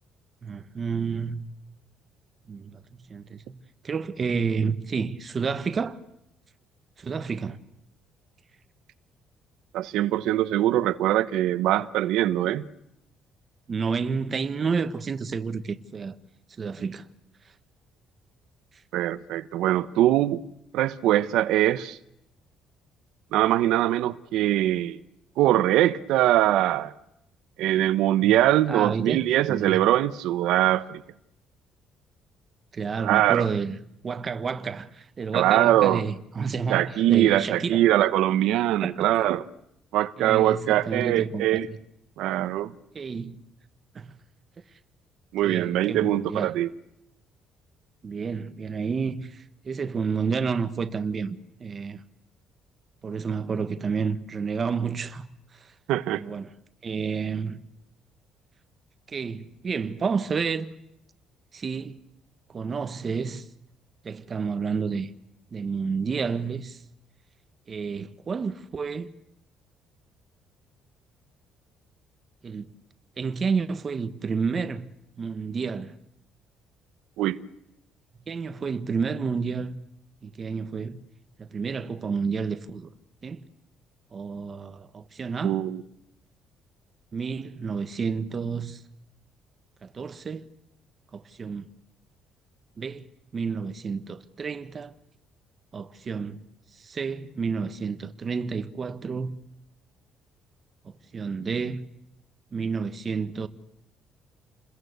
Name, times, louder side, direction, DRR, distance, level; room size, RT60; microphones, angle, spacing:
voice 1, 0.4-1.4 2.5-3.5 3.8-6.0 7.0-7.6 13.7-16.1 16.6-17.1 28.2-28.4 28.7-29.8 32.7-33.8 34.0-37.9 38.8-39.1 40.2-41.8 42.9-43.4 43.9-44.1 45.4-46.5 48.0-52.0 53.0-55.2 55.5-55.7 56.1-56.5 56.8-57.6 59.1-60.7 61.5-62.0 62.5-63.5 64.0-65.1 65.5-66.8 67.7-69.1 72.4-72.7 73.2-74.9 75.2-75.9 78.3-79.8 80.2-81.0 81.4-82.9 83.2-83.4 84.1-85.6 87.1-88.8 89.8-90.5 91.1-91.7 92.8-93.1 93.3-94.9 95.7-96.4 96.7-99.3 100.8-101.8 102.5-103.5, right 5 dB, 30° right, 1.3 m, -30 dB
voice 2, 9.7-12.6 18.9-20.4 20.7-22.0 23.3-25.0 25.4-26.9 27.6-31.0 33.0-33.5 35.3-36.0 36.7-39.4 39.9-41.7 42.2-42.7 45.3-46.7 55.9-56.2 77.2-77.4 85.4-85.8, right 13 dB, 80° right, 1.0 m, -22 dB
29.5 x 21.5 x 8.2 m
cardioid pair, 160°, 0 cm